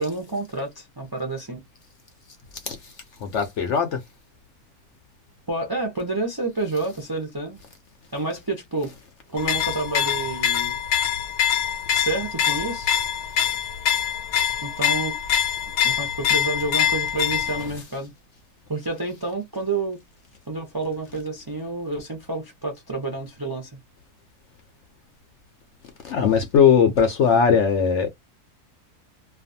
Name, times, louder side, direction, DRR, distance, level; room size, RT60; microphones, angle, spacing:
voice 1, 0.0-1.6 5.5-7.6 8.1-8.9 9.3-10.8 11.9-13.0 14.6-15.1 15.8-18.1 18.7-20.0 20.5-23.7, right 3 dB, 40° right, 0.3 m, -29 dB
voice 2, 2.5-2.9 3.2-4.0 17.6-17.7 26.0-28.1, left 7 dB, 65° left, 0.7 m, -20 dB
sound 1, 9.4-17.7, left 9 dB, 90° left, 1.2 m, -24 dB
2.5 x 2.3 x 2.6 m
omnidirectional pair, 1.6 m